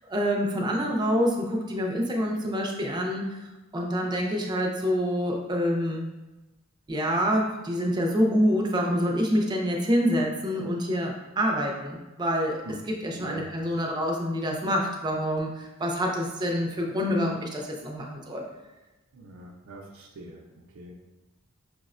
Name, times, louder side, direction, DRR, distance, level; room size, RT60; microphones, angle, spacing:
voice 1, 0.1-3.2 3.7-6.1 6.9-12.6 13.0-18.4, equal, 20° right, 0 dB, 0.4 m, -26 dB
voice 2, 13.1-13.5 19.1-20.9, right 2 dB, 80° right, -1 dB, 0.4 m, -43 dB
4.9 x 2.1 x 2.4 m, 1.1 s
head